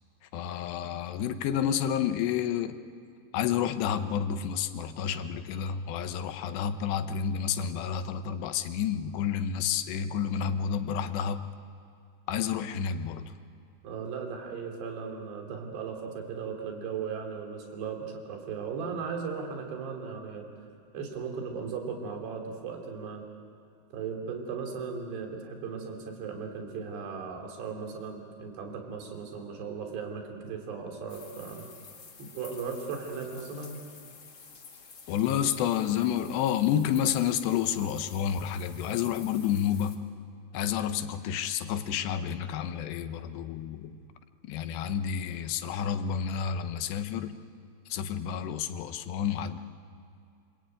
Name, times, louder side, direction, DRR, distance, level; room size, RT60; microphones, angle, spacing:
voice 1, 0.3-2.7 3.3-11.4 12.3-13.3 35.1-40.0 40.5-44.0 44.4-47.4 47.9-49.6, left 8 dB, 90° left, 9 dB, 3.3 m, -30 dB
voice 2, 13.8-20.5 20.9-23.2 23.9-31.7 32.2-33.8, right 5 dB, 85° right, 2 dB, 5.2 m, -37 dB
sound 1, 31.1-40.0, left 5 dB, 35° left, 2.3 m, -50 dB
25.5 x 24.5 x 9.1 m, 2.5 s
omnidirectional pair, 4.8 m